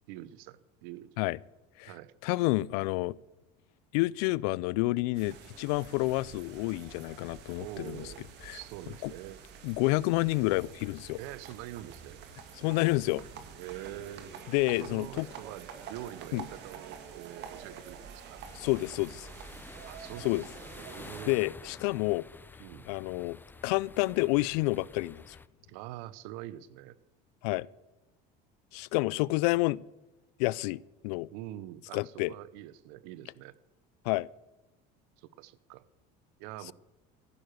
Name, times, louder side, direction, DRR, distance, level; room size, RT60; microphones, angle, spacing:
voice 1, 0.1-1.1 1.9-2.1 7.6-8.2 8.5-9.4 11.2-12.2 13.5-14.3 14.7-18.4 19.8-20.3 20.8-21.4 22.6-22.9 25.7-27.0 31.3-33.5 35.2-35.8 36.4-36.7, right 14 dB, 80° right, 0.8 m, -44 dB
voice 2, 2.2-3.1 3.9-8.1 8.5-8.6 9.0-9.1 9.6-11.2 12.6-13.2 14.5-15.3 16.3-16.4 18.5-19.3 20.2-20.4 21.3-22.3 22.9-23.4 23.6-25.4 27.4-27.7 28.7-29.8 30.4-31.3 31.9-32.3 34.0-34.3, left 21 dB, 85° left, 0.4 m, -29 dB
sound 1, 5.1-21.3, right 7 dB, 60° right, 2.1 m, -48 dB
sound 2, 18.4-25.5, left 3 dB, 10° left, 0.6 m, -50 dB
15.0 x 6.6 x 9.2 m
supercardioid pair, 110°, 20 cm